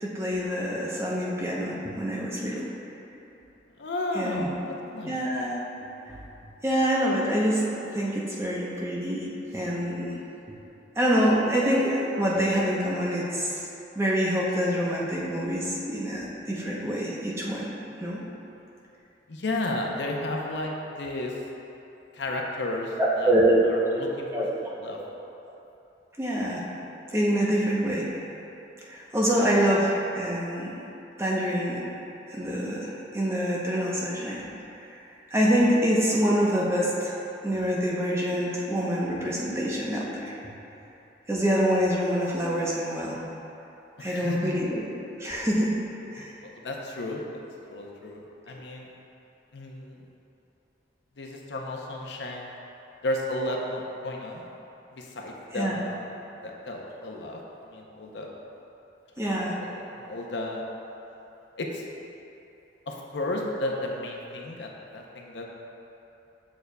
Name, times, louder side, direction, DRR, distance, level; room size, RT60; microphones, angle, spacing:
voice 1, 0.0-2.6 4.1-4.5 5.0-5.6 6.1-6.2 6.6-9.3 9.5-10.2 11.0-13.6 14.0-17.7 18.0-18.2 23.0-23.5 23.9-24.0 24.3-24.5 26.2-26.6 27.1-28.1 28.9-29.9 30.1-30.8 31.2-31.8 32.3-34.5 34.8-34.9 35.3-37.2 37.4-40.3 41.3-43.2 44.0-44.9 45.2-45.7 46.1-46.3 55.5-55.8 59.2-59.6, equal, 15° right, -5 dB, 0.7 m, -26 dB
voice 2, 3.8-5.2 19.3-21.4 22.1-23.3 23.7-24.3 24.8-25.0 29.4-29.5 44.0-44.5 46.2-47.2 47.7-48.9 49.5-50.0 51.2-52.5 53.0-54.5 54.9-56.1 56.4-58.3 59.2-60.6 61.6-61.8 62.9-65.5, left 1 dB, 75° left, 0 dB, 0.6 m, -33 dB
7.0 x 6.5 x 2.2 m, 2.9 s
head